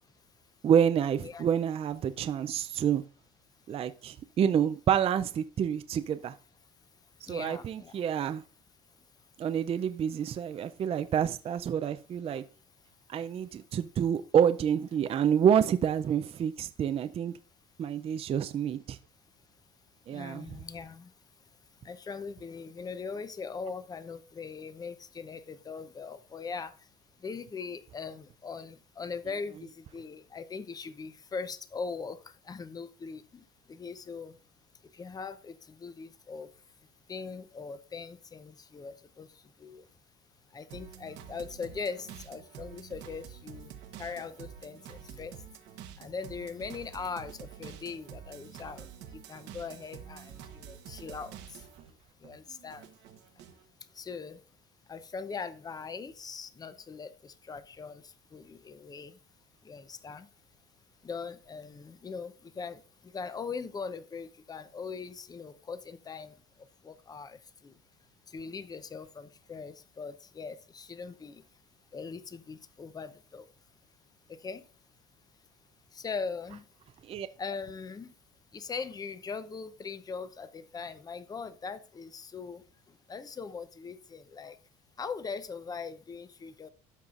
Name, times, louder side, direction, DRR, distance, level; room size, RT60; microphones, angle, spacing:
voice 1, 0.6-3.0 3.7-6.3 7.2-8.4 9.4-12.4 13.1-17.3 17.8-19.0 20.1-20.5 77.0-77.3, right 8 dB, 30° right, 0.4 m, -28 dB
voice 2, 7.3-7.9 20.1-21.1 21.8-26.7 27.2-32.2 32.5-33.4 33.7-34.3 34.9-36.5 37.1-39.3 39.6-39.9 40.5-43.7 44.0-45.3 46.0-48.9 49.3-51.4 52.2-52.9 54.0-54.4 54.9-58.0 58.3-59.1 59.6-60.3 61.0-62.8 63.1-66.3 66.8-67.4 67.6-67.7 68.3-71.4 71.9-73.4 74.3-74.6 75.9-76.6 77.4-78.1 78.5-82.6 83.1-84.6 85.0-86.7, left 5 dB, 20° left, 0.6 m, -40 dB
sound 1, 40.7-51.9 52.2-53.6, right 9 dB, 70° right, 1.1 m, -48 dB
13.0 x 5.5 x 2.5 m
cardioid pair, 115°, 18 cm